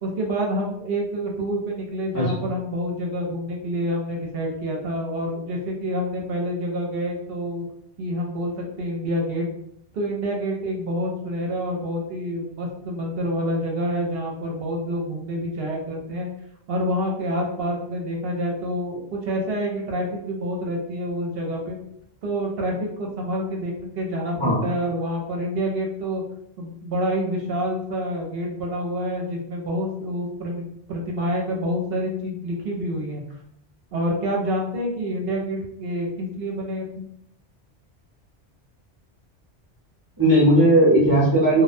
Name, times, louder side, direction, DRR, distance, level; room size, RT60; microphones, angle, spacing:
voice 1, 0.0-7.7 8.0-9.5 9.9-16.3 16.7-21.8 22.2-26.2 26.6-30.6 30.9-33.2 33.9-37.1, equal, 65° right, 0 dB, 0.8 m, -27 dB
voice 2, 24.3-24.7 40.2-41.6, right 1 dB, 25° right, -7 dB, 0.6 m, -17 dB
2.2 x 2.1 x 2.5 m, 0.73 s
omnidirectional pair, 1.2 m